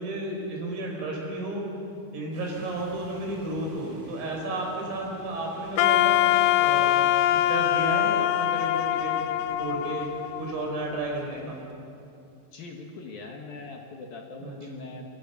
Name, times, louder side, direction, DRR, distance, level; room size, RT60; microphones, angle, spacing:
voice 1, 0.0-1.6 2.1-9.3 9.6-10.1 10.4-11.6 14.4-14.9, right 2 dB, 80° right, 0 dB, 8.0 m, -33 dB
sound 1, 2.3-11.6, right 1 dB, 45° right, 9.5 m, -51 dB
Wind instrument woodwind instrument, 5.8-10.8, left 13 dB, 80° left, 3.2 m, -23 dB
voice 2, 12.5-15.1, left 3 dB, 60° left, 1 dB, 2.8 m, -41 dB
26.5 x 24.0 x 7.3 m, 2.6 s
omnidirectional pair, 5.8 m